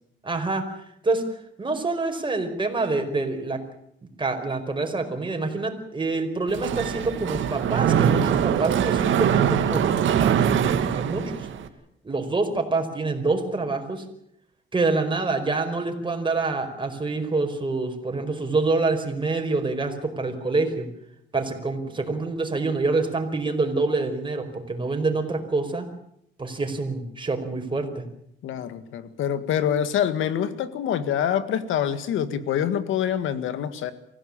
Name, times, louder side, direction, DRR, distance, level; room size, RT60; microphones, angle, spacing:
voice 1, 0.2-0.6 1.0-1.3 1.6-3.6 4.2-11.5 12.0-14.0 14.7-20.9 21.3-25.8 26.4-27.9, right 3 dB, 25° right, 5 dB, 5.0 m, -26 dB
Mechanisms, 6.5-11.7, right 8 dB, 75° right, 2.2 m, -22 dB
voice 2, 28.4-33.9, left 9 dB, 85° left, 12 dB, 1.9 m, -26 dB
25.0 x 16.5 x 8.7 m, 0.74 s
cardioid pair, 90°, 20 cm